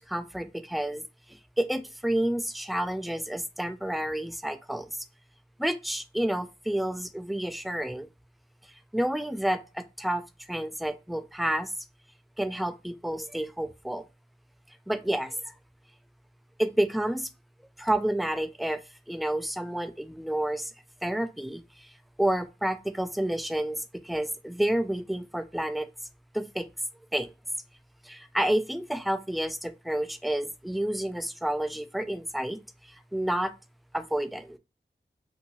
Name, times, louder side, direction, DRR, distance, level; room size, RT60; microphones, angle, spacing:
voice 1, 0.1-1.0 1.6-4.9 5.6-8.1 8.9-10.2 10.5-11.7 12.4-14.0 14.9-15.5 16.6-17.3 17.8-18.8 19.1-20.7 21.0-21.6 22.2-25.9 26.3-26.7 27.1-27.3 28.1-32.6 33.1-33.5 33.9-34.6, right 1 dB, ahead, 0.3 m, -29 dB
2.7 x 2.7 x 2.7 m
wide cardioid pair, 45°, 20 cm